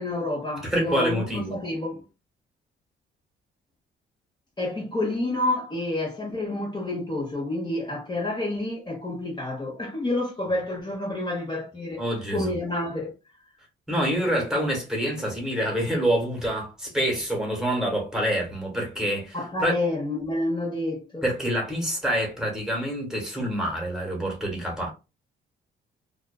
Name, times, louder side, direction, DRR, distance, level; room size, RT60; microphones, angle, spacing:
voice 1, 0.0-2.0 4.6-12.0 12.3-13.1 19.3-21.3, left 2 dB, 20° left, 0.9 m, -29 dB
voice 2, 0.6-1.6 12.0-12.5 13.9-19.7 21.2-24.9, equal, 5° right, 1.3 m, -27 dB
2.4 x 2.3 x 2.2 m
cardioid pair, 90°, 20 cm